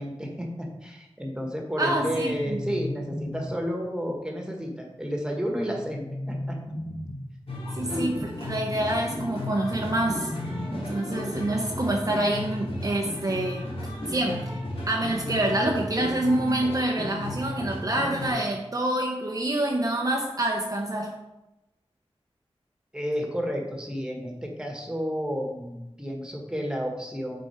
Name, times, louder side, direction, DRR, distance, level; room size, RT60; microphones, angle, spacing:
voice 1, 0.0-6.6 7.9-8.2 22.9-27.4, equal, 5° right, 1 dB, 1.5 m, -31 dB
voice 2, 1.8-2.6 7.7-10.3 10.7-13.6 14.1-14.5 14.9-21.1, right 1 dB, 35° right, 0 dB, 0.8 m, -27 dB
sound 1, 1.9-3.9 5.6-7.5 9.3-11.2, left 1 dB, 30° left, 0.7 m, -37 dB
sound 2, 7.5-18.3, left 1 dB, 70° left, 2.3 m, -34 dB
6.4 x 4.5 x 4.5 m, 0.96 s
wide cardioid pair, 65°, 10 cm